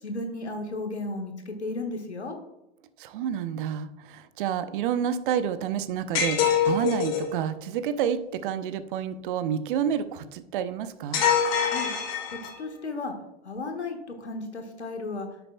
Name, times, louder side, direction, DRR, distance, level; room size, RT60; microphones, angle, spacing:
voice 1, 0.0-2.4 11.6-11.9 12.3-13.1 13.4-15.3, left 2 dB, 90° left, 4 dB, 1.4 m, -34 dB
voice 2, 3.0-11.2, right 8 dB, 50° right, 12 dB, 0.7 m, -29 dB
sound 1, 6.1-7.3 11.1-12.7, left 7 dB, 60° left, 2.0 m, -25 dB
9.7 x 6.8 x 2.2 m, 0.89 s
figure-of-eight pair, 100°, 33 cm